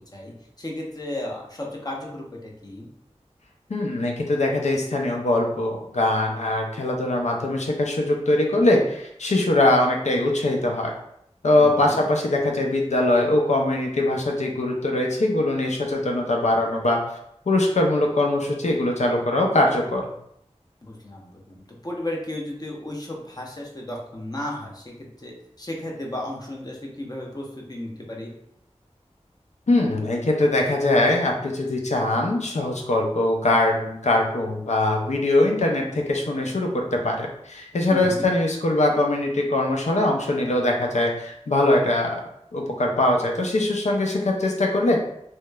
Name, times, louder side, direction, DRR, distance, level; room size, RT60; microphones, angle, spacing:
voice 1, 0.1-2.9 11.8-12.0 20.8-25.3 25.6-28.3 37.9-38.3, left 1 dB, 35° left, -2 dB, 0.7 m, -34 dB
voice 2, 3.7-10.9 11.4-17.0 17.5-20.1 29.7-42.2 42.5-45.0, left 2 dB, 75° left, 1 dB, 0.5 m, -22 dB
2.9 x 2.0 x 2.2 m, 0.74 s
wide cardioid pair, 50°, 12 cm